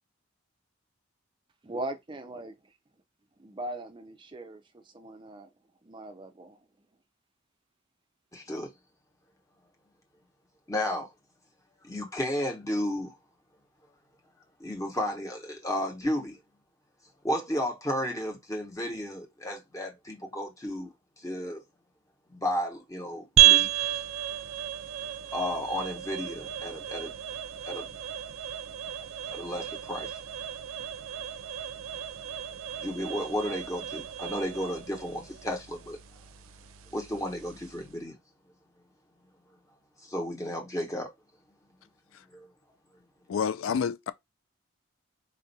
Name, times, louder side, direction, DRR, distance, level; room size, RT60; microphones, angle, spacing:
voice 1, 1.6-2.5 3.4-4.6 4.9-5.5 5.9-6.6, right 1 dB, 20° right, 0.4 m, -39 dB
voice 2, 8.3-8.7 10.7-11.1 11.8-13.1 14.6-16.4 17.2-20.9 21.2-21.6 22.3-24.0 25.3-27.1 27.6-27.9 29.3-30.2 32.8-36.0 36.9-38.1 40.1-41.1 42.3-42.5, left 1 dB, 15° left, 1.0 m, -33 dB
sound 1, 23.4-38.0, right 13 dB, 75° right, 0.5 m, -31 dB
voice 3, 43.3-44.1, left 7 dB, 70° left, 0.3 m, -29 dB
4.3 x 2.6 x 4.0 m
head